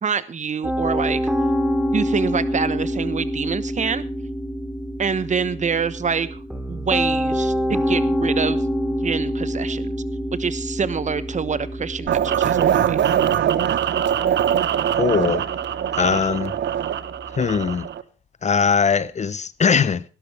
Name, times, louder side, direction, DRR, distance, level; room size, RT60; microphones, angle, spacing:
voice 1, 0.0-1.2 1.9-4.0 5.0-6.4 6.7-8.6 9.0-9.9 10.4-13.0, right 6 dB, 35° right, 1.1 m, -26 dB
Piano, 0.6-17.8, equal, ahead, 3.2 m, -27 dB
sound 1, 12.1-18.0, right 10 dB, 65° right, 1.1 m, -22 dB
voice 2, 14.9-15.5 16.0-16.5 17.4-17.9 18.4-20.0, left 6 dB, 35° left, 0.8 m, -20 dB
18.5 x 12.0 x 3.4 m
cardioid pair, 90°, 20 cm